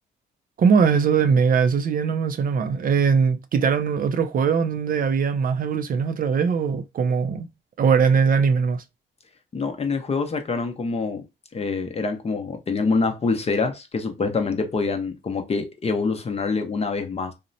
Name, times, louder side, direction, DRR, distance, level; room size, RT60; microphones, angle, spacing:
voice 1, 0.6-7.5 7.8-8.8, right 6 dB, 45° right, 0.4 m, -21 dB
voice 2, 9.5-11.2 11.5-17.3, left 4 dB, 30° left, 0.6 m, -25 dB
2.8 x 2.1 x 2.5 m
cardioid pair, 90°, 20 cm